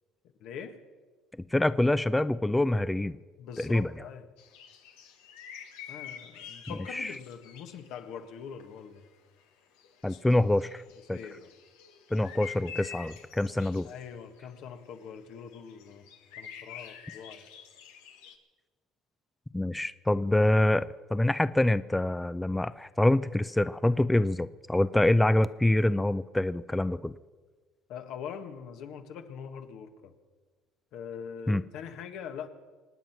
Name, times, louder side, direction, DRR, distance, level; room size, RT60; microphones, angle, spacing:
voice 1, 0.4-0.8 3.4-4.3 5.9-9.1 10.1-10.2 11.1-11.5 13.8-16.0 16.4-17.5 27.9-30.1 30.9-32.5, left 7 dB, 70° left, 1.6 m, -43 dB
voice 2, 1.5-3.2 3.6-3.9 6.9-7.1 10.0-10.8 11.1-11.2 12.1-13.9 19.5-27.1 31.5-31.6, left 1 dB, 10° left, 0.5 m, -25 dB
sound 1, 4.4-8.8 9.1-9.2 9.4-9.5 9.8-18.4, left 8 dB, 90° left, 1.5 m, -47 dB
25.5 x 9.3 x 5.9 m
supercardioid pair, 90°, 0 cm